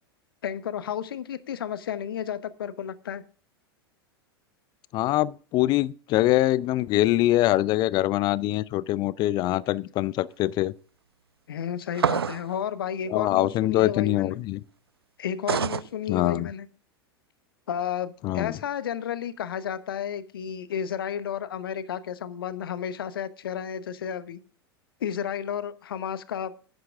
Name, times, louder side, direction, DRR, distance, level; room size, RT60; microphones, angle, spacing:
voice 1, 0.4-3.2 11.5-14.4 15.2-16.7 17.7-24.4 25.0-26.5, left 9 dB, 65° left, 0.9 m, -32 dB
voice 2, 4.9-10.7 13.1-14.6 16.1-16.5 18.2-18.5, left 15 dB, 35° left, 0.5 m, -24 dB
sound 1, 12.0-12.5 15.5-15.9, right 7 dB, 80° right, 0.4 m, -25 dB
11.0 x 9.2 x 3.6 m
figure-of-eight pair, 90°, 13 cm